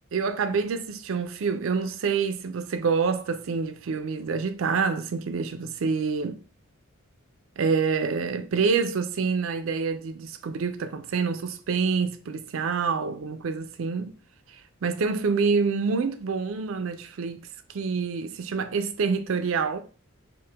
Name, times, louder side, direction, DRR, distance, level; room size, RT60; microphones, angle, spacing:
voice 1, 0.1-6.4 7.6-14.2 14.8-19.8, right 5 dB, 70° right, 0.4 m, -27 dB
4.6 x 2.1 x 3.4 m
head